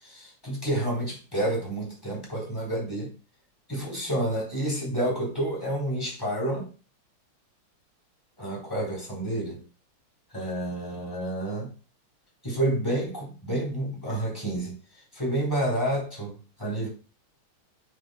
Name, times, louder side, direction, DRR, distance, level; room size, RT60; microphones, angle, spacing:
voice 1, 0.0-3.1 3.7-6.7 8.4-9.6 10.3-11.7 12.4-14.7 15.1-16.9, right 1 dB, 10° left, 3.8 m, -29 dB
8.9 x 8.1 x 2.3 m
omnidirectional pair, 2.4 m